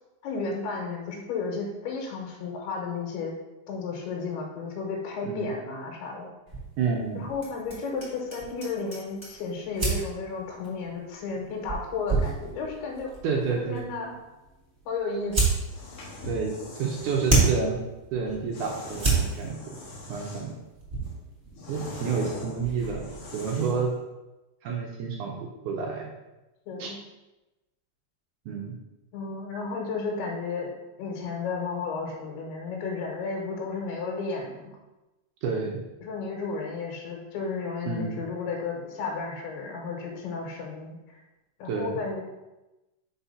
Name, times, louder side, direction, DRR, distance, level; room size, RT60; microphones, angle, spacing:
voice 1, 0.2-3.3 3.7-6.3 7.1-13.1 13.5-14.1 14.9-15.4 26.7-27.0 29.1-34.8 36.0-41.2 41.6-42.2, left 4 dB, 90° left, 0 dB, 3.1 m, -33 dB
sound 1, 6.5-23.3, right 4 dB, 20° right, 2.3 m, -32 dB
voice 2, 6.8-7.2 13.2-13.9 16.3-17.8 18.1-19.8 20.1-20.6 21.7-23.1 23.3-23.9 24.6-26.1 26.8-26.9 28.5-28.7 35.4-35.8 37.9-38.3 41.7-42.0, right 5 dB, 75° right, 0 dB, 1.9 m, -29 dB
Hammer, 7.4-9.5, left 1 dB, 50° left, 0.4 m, -48 dB
sound 2, 15.6-17.5 18.5-20.6 21.0-23.9, left 2 dB, 70° left, 1.4 m, -42 dB
5.7 x 4.3 x 5.5 m, 1.0 s
omnidirectional pair, 4.5 m